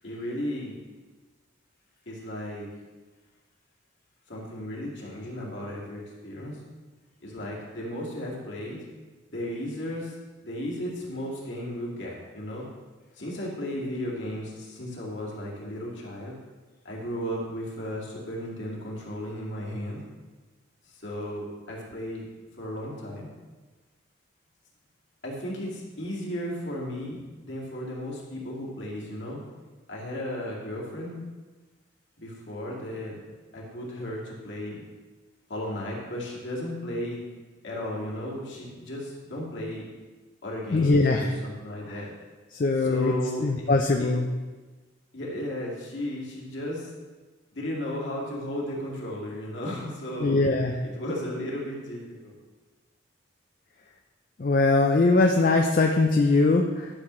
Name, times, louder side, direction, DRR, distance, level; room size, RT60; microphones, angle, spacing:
voice 1, 0.0-0.8 2.1-2.7 4.3-6.6 7.2-8.8 9.3-10.1 10.4-12.7 13.2-16.4 16.8-20.0 20.9-22.3 22.6-23.3 25.2-29.4 29.9-31.2 32.2-34.8 35.5-37.2 37.6-39.9 40.4-42.1 42.7-43.7 44.0-44.1 45.1-46.9 47.5-50.4 50.8-52.3, equal, 65° left, -4 dB, 2.2 m, -35 dB
voice 2, 40.7-41.3 41.9-42.0 42.5-43.1 43.4-44.3 50.2-50.7 54.4-56.9, left 3 dB, 45° left, 2 dB, 0.5 m, -21 dB
12.0 x 6.9 x 3.2 m, 1.3 s
head